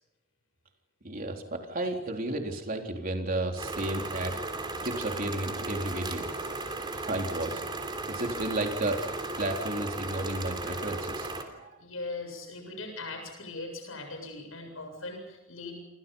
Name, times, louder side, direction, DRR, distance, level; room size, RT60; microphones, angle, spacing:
voice 1, 1.0-4.4 4.8-6.3 6.9-7.6 8.1-11.3 11.6-11.7, right 1 dB, 45° right, 2 dB, 3.7 m, -32 dB
sound 1, 3.6-11.4, right 2 dB, 25° right, 3.7 m, -36 dB
voice 2, 11.8-15.8, left 2 dB, 90° left, 4 dB, 7.6 m, -40 dB
29.5 x 26.5 x 5.5 m, 0.95 s
head